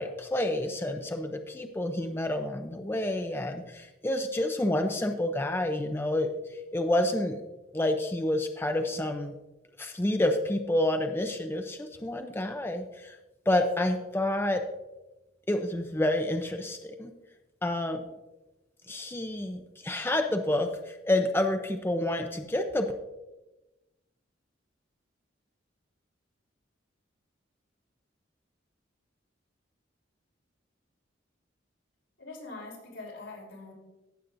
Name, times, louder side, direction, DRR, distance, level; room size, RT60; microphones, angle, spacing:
voice 1, 0.0-7.4 7.7-9.4 9.8-13.2 13.5-14.6 15.5-17.1 17.6-18.0 18.9-22.9, left 1 dB, 10° left, 5 dB, 0.5 m, -29 dB
voice 2, 32.2-33.7, left 3 dB, 90° left, -2 dB, 3.6 m, -43 dB
16.0 x 7.5 x 2.6 m, 1.0 s
head